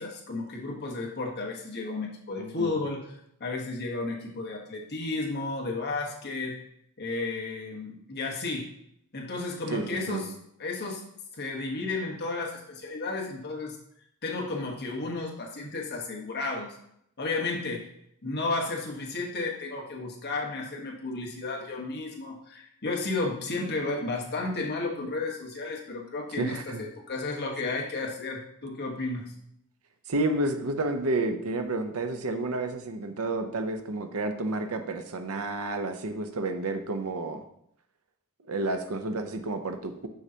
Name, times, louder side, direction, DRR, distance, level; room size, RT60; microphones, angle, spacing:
voice 1, 0.0-3.1 3.4-6.6 7.0-8.7 9.1-10.3 10.6-11.0 11.3-13.8 14.2-16.8 17.2-17.9 18.2-29.3, left 3 dB, 50° left, -1 dB, 1.3 m, -33 dB
voice 2, 2.4-2.8 9.7-10.3 26.3-26.8 30.1-37.4 38.5-40.1, right 2 dB, 70° right, 7 dB, 0.7 m, -30 dB
6.5 x 6.3 x 2.8 m, 0.72 s
head